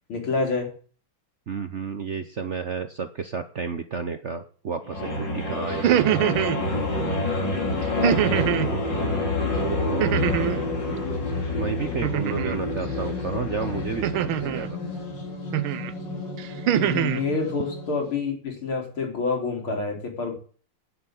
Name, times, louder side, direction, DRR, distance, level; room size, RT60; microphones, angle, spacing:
voice 1, 0.1-0.7 7.2-8.7 16.8-20.3, left 4 dB, 90° left, 0 dB, 4.8 m, -28 dB
voice 2, 1.5-6.0 9.5-10.2 11.6-14.8, right 6 dB, 50° right, 9 dB, 0.8 m, -31 dB
sound 1, 4.8-18.1, left 2 dB, 60° left, 3.6 m, -28 dB
sound 2, 5.7-6.6 8.0-8.7 10.0-10.7 12.0-12.6 14.0-14.7 15.5-15.9 16.4-17.2, right 11 dB, 80° right, 1.6 m, -23 dB
10.5 x 7.1 x 9.1 m, 0.41 s
omnidirectional pair, 2.2 m